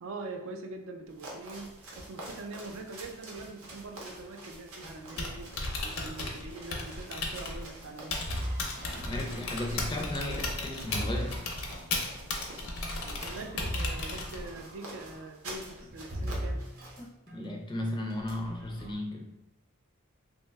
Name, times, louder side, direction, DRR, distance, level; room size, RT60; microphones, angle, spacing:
voice 1, 0.0-1.7 2.0-5.5 5.8-8.1 13.0-16.6, right 3 dB, 65° right, 4 dB, 0.4 m, -43 dB
sound 1, 1.1-17.1, right 1 dB, 85° right, 0.7 m, -48 dB
Typing, 5.0-14.6, left 2 dB, 70° left, 0.5 m, -36 dB
sound 2, 8.3-12.1 12.8-17.0 17.3-17.5 18.1-18.9, equal, 45° right, 0.8 m, -38 dB
voice 2, 9.1-11.4 17.0-19.3, left 1 dB, 20° left, 2 dB, 0.4 m, -35 dB
2.7 x 2.1 x 3.3 m, 0.86 s
head